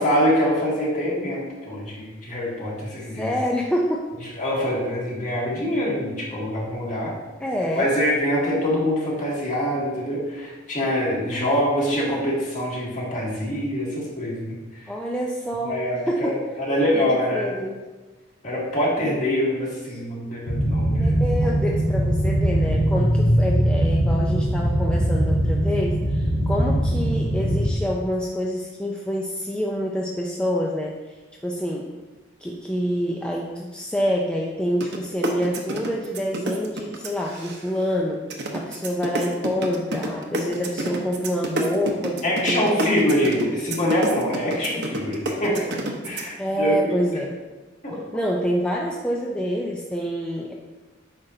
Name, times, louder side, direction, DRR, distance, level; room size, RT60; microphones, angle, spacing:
voice 1, 0.0-3.3 4.4-7.1 7.7-14.6 15.6-17.5 18.4-21.1 21.4-21.5 42.2-45.7 46.0-47.0 47.8-48.0, equal, 40° left, -5 dB, 2.1 m, -24 dB
voice 2, 3.1-4.1 7.4-7.9 11.3-12.3 14.9-15.8 16.1-16.5 16.9-17.0 17.3-17.8 20.9-31.0 31.4-31.9 32.4-38.3 38.5-43.0 46.4-47.4 48.1-50.5, equal, 5° left, -2 dB, 0.4 m, -27 dB
sound 1, 20.5-27.7, right 1 dB, 75° left, 1.2 m, -21 dB
sound 2, 34.8-35.0 35.2-37.8 38.3-46.2, right 2 dB, 60° right, 0.9 m, -28 dB
8.7 x 5.5 x 2.7 m, 1.2 s
head